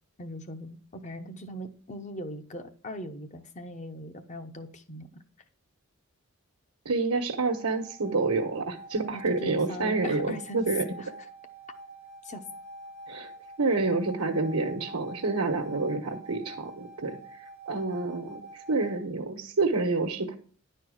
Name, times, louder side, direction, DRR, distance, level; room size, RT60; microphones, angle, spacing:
voice 1, 0.2-5.2 9.1-10.6 11.0-11.1 12.2-12.5, equal, 30° left, 8 dB, 0.8 m, -40 dB
voice 2, 6.8-10.8 13.1-13.3 13.6-20.3, right 3 dB, 80° right, 0 dB, 1.1 m, -28 dB
sound 1, 7.3-19.0, right 1 dB, 60° left, 1.6 m, -46 dB
10.5 x 4.4 x 6.4 m, 0.44 s
head